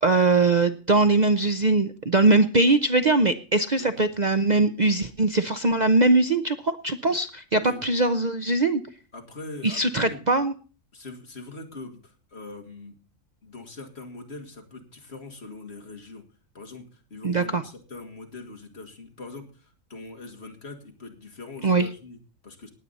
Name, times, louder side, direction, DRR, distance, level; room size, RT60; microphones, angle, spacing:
voice 1, 0.0-8.8 9.6-10.5 17.2-17.6 21.6-21.9, right 2 dB, 40° right, 9 dB, 0.7 m, -21 dB
voice 2, 3.7-4.1 7.6-7.8 9.1-10.3 10.9-12.9 13.4-16.2 16.5-22.7, left 3 dB, 50° left, 4 dB, 2.5 m, -42 dB
19.0 x 8.5 x 4.1 m, 0.37 s
omnidirectional pair, 1.4 m